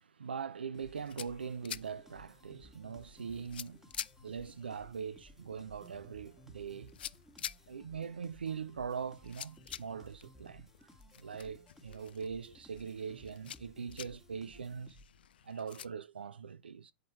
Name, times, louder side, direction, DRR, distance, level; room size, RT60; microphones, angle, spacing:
voice 1, 0.0-3.8 4.2-7.0 7.7-10.9 11.2-15.0 15.4-16.9, right 6 dB, 90° right, 0.4 m, -42 dB
sound 1, 0.7-15.3, equal, 5° right, 1.4 m, -59 dB
sound 2, 0.8-15.9, left 10 dB, 75° left, 0.4 m, -50 dB
7.7 x 4.8 x 4.3 m
hypercardioid pair, 105°, 5 cm